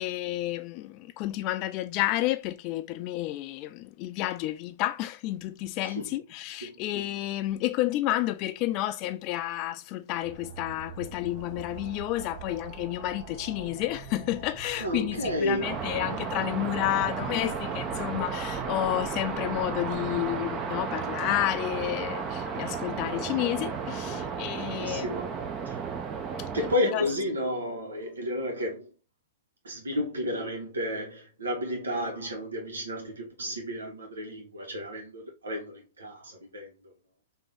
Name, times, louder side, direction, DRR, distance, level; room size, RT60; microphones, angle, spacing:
voice 1, 0.0-25.1 26.9-27.0, left 15 dB, 40° left, 0.4 m, -31 dB
voice 2, 5.8-6.2 6.6-6.8 14.8-15.8 24.0-24.2 24.6-25.8 26.5-28.9 29.6-36.9, left 1 dB, 85° right, 1.5 m, -32 dB
sound 1, 10.2-20.3, right 5 dB, 55° right, 1.2 m, -43 dB
sound 2, 15.6-26.8, right 6 dB, 25° right, 0.6 m, -33 dB
3.7 x 2.8 x 3.4 m
hypercardioid pair, 125°, 0 cm